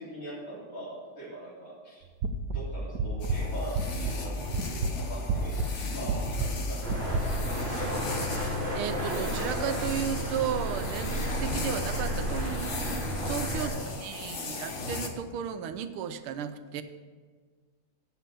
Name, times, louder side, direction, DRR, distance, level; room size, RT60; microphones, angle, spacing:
voice 1, 0.0-2.1 2.4-5.6 5.9-8.1 13.5-14.5, right 1 dB, 70° left, -7 dB, 4.5 m, -42 dB
sound 1, 2.2-4.3 4.5-7.2, right 3 dB, 70° right, 0.8 m, -30 dB
sound 2, 3.2-15.1, left 3 dB, 45° left, 1.0 m, -37 dB
sound 3, 6.8-13.7, right 1 dB, 30° left, 3.7 m, -32 dB
voice 2, 8.7-12.9 13.3-13.7 14.0-16.8, right 8 dB, 90° right, 10 dB, 1.6 m, -34 dB
9.0 x 7.0 x 7.5 m, 1.5 s
omnidirectional pair, 2.3 m